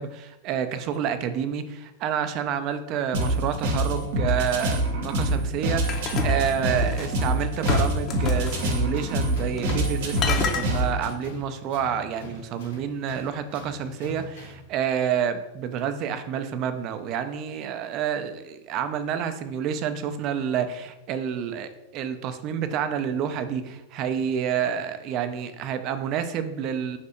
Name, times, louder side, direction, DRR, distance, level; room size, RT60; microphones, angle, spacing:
voice 1, 0.0-27.0, right 8 dB, 45° right, 9 dB, 0.4 m, -29 dB
sound 1, 3.1-11.1, right 1 dB, 65° right, 0.8 m, -26 dB
sound 2, 5.9-7.2 7.7-8.7 9.6-9.9 10.2-10.7, left 4 dB, 40° left, 0.6 m, -28 dB
Tools, 8.1-14.7, left 2 dB, 80° left, 1.1 m, -43 dB
3.3 x 2.6 x 4.2 m, 0.95 s
hypercardioid pair, 110°, 0 cm